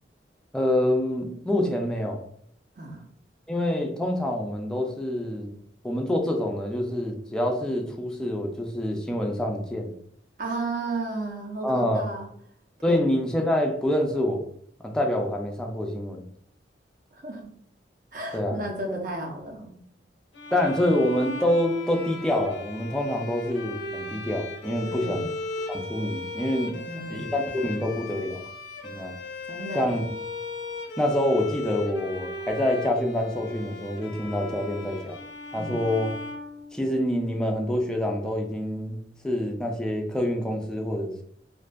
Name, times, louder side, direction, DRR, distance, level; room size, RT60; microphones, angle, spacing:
voice 1, 0.5-2.2 3.5-5.5 5.8-9.9 11.6-12.0 12.8-14.4 14.8-16.2 18.3-18.6 20.5-25.3 25.7-26.7 27.1-28.4 28.8-29.1 29.7-30.0 31.0-35.2 35.5-36.1 36.7-41.2, left 1 dB, 5° left, 1 dB, 0.3 m, -26 dB
voice 2, 10.4-12.3 12.9-13.0 17.1-17.4 18.1-19.7 24.8-25.2 26.7-27.3 29.5-29.9 35.6-35.7, right 2 dB, 50° right, 2 dB, 0.6 m, -33 dB
sound 1, 20.3-37.2, left 3 dB, 85° left, 0.5 m, -37 dB
2.5 x 2.2 x 2.2 m, 0.66 s
head